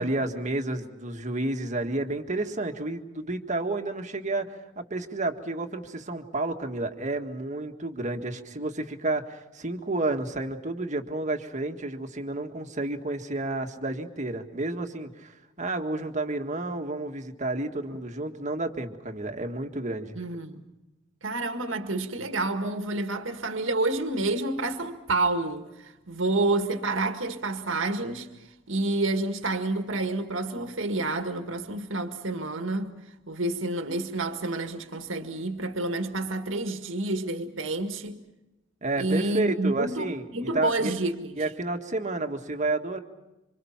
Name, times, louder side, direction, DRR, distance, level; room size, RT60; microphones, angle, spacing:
voice 1, 0.0-20.2 38.8-40.2 40.5-41.0 41.4-43.0, right 2 dB, 40° right, 1.8 m, -31 dB
voice 2, 20.2-20.6 21.2-28.3 28.7-32.9 33.3-38.2 39.0-41.4, right 2 dB, 80° right, 1.8 m, -29 dB
27.0 x 26.0 x 5.8 m
head